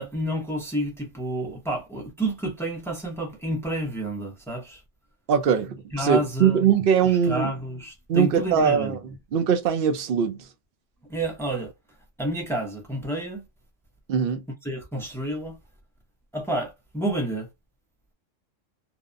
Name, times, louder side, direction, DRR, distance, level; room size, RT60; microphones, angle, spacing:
voice 1, 0.0-4.8 5.9-6.7 7.0-9.0 11.1-11.7 12.2-13.4 14.6-15.6 16.3-17.5, right 1 dB, 5° left, 0.3 m, -29 dB
voice 2, 5.3-7.5 8.1-9.0 9.3-10.4 14.1-14.4, right 7 dB, 60° right, 0.7 m, -21 dB
2.8 x 2.1 x 2.4 m
omnidirectional pair, 1.3 m